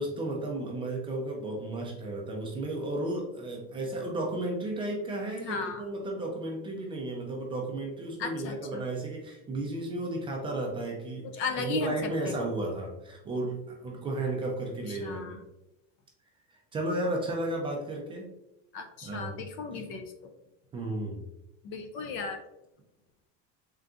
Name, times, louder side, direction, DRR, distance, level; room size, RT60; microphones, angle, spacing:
voice 1, 0.0-11.3 11.6-15.4 16.5-18.3 19.0-19.4 19.7-19.8 20.7-21.3, right 2 dB, 15° right, -1 dB, 0.4 m, -33 dB
voice 2, 5.4-5.8 8.2-8.8 11.2-12.3 15.0-15.4 18.7-20.3 21.6-22.4, left 4 dB, 40° left, 6 dB, 0.4 m, -35 dB
3.8 x 3.6 x 2.3 m, 0.90 s
cardioid pair, 165°, 31 cm